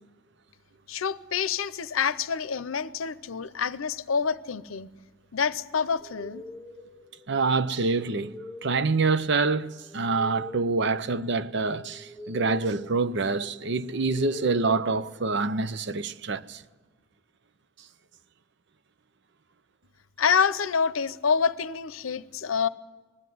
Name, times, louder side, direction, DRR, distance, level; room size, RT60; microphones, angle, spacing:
voice 1, 0.9-4.9 5.3-6.4 20.2-22.7, left 6 dB, 90° left, 0.7 m, -27 dB
sound 1, 6.0-15.7, left 1 dB, 20° left, 2.6 m, -45 dB
voice 2, 7.3-8.3 8.6-16.6, right 4 dB, 60° right, 0.7 m, -26 dB
20.0 x 15.0 x 9.3 m
head